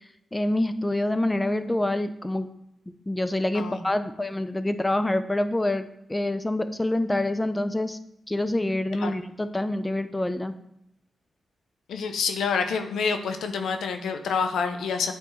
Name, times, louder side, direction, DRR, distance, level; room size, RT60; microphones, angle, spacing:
voice 1, 0.3-2.5 3.1-8.0 8.3-10.5, left 1 dB, 20° left, 11 dB, 0.4 m, -26 dB
voice 2, 11.9-15.1, left 5 dB, 80° left, 6 dB, 0.5 m, -27 dB
8.9 x 3.5 x 3.0 m, 0.80 s
supercardioid pair, 40°, 0 cm